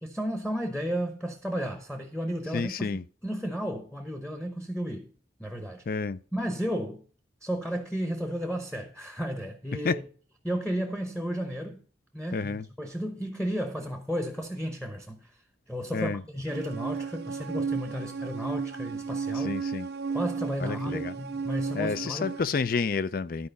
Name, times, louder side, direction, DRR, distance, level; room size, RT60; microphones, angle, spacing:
voice 1, 0.0-5.1 5.4-5.8 6.3-7.0 7.4-10.0 10.4-11.8 12.1-15.3 15.7-19.6 20.1-22.3, equal, 5° left, 0.9 m, -33 dB
voice 2, 2.5-3.0 5.9-6.2 9.8-10.0 12.3-12.7 15.9-16.2 19.4-19.9 20.6-21.1 21.8-23.5, left 4 dB, 50° left, 0.4 m, -29 dB
sound 1, 16.5-22.4, right 5 dB, 60° right, 0.6 m, -33 dB
12.5 x 4.8 x 5.2 m
head